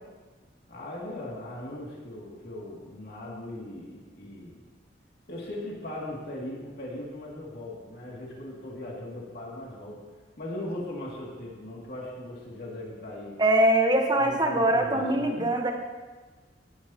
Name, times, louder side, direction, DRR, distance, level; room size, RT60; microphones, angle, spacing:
voice 1, 0.7-4.6 5.3-10.0 10.4-13.4 14.2-15.5, left 1 dB, 60° left, -4 dB, 2.4 m, -39 dB
voice 2, 13.4-15.7, right 1 dB, 25° right, 3 dB, 1.1 m, -22 dB
16.0 x 9.7 x 2.9 m, 1.3 s
head